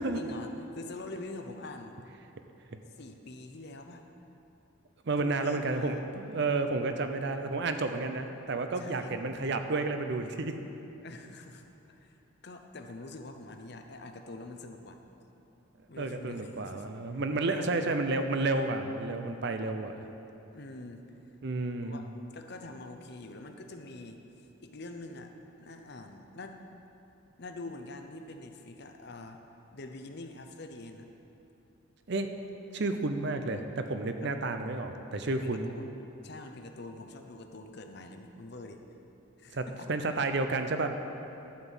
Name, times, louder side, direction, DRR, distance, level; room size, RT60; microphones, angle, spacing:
voice 1, 0.1-2.0 2.9-4.0 5.2-6.0 8.8-9.2 11.0-12.1 12.4-15.0 15.9-16.9 17.4-17.9 20.5-21.2 21.8-22.1 22.3-24.2 24.6-25.3 25.6-26.6 27.4-29.4 29.7-31.1 34.2-34.3 35.3-35.9 36.2-38.8 39.4-39.9, left 2 dB, 50° left, 5 dB, 0.7 m, -45 dB
voice 2, 5.0-10.6 16.0-20.0 21.4-22.0 32.1-32.3 32.7-35.7 39.5-40.9, right 3 dB, 55° right, 7 dB, 0.6 m, -31 dB
11.5 x 6.0 x 7.3 m, 3.0 s
head